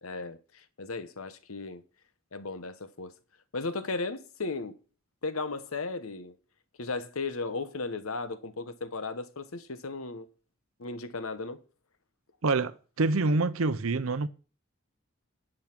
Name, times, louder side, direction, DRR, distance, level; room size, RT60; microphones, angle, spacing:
voice 1, 0.0-1.8 2.3-3.1 3.5-4.8 5.2-6.3 6.8-10.3 10.8-11.6, left 3 dB, 85° left, 1.0 m, -35 dB
voice 2, 12.4-14.3, right 3 dB, 80° right, 0.7 m, -26 dB
10.5 x 6.4 x 5.9 m
head